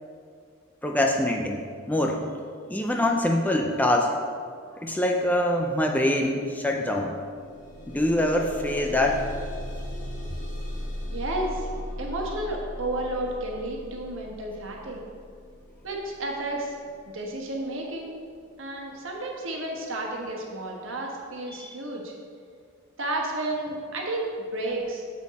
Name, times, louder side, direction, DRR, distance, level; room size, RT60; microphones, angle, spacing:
voice 1, 0.8-2.2 2.7-4.1 4.7-7.2 7.9-9.2 21.6-21.7, left 1 dB, 10° left, 2 dB, 0.4 m, -24 dB
sound 1, 7.2-18.0 18.8-18.9 19.4-19.5, equal, 40° left, 1.2 m, -38 dB
voice 2, 11.1-11.7 12.0-15.0 15.8-16.7 17.1-18.2 18.6-22.1 23.0-24.2 24.5-25.0, right 1 dB, 65° right, 0 dB, 1.3 m, -32 dB
7.3 x 6.2 x 4.1 m, 2.2 s
head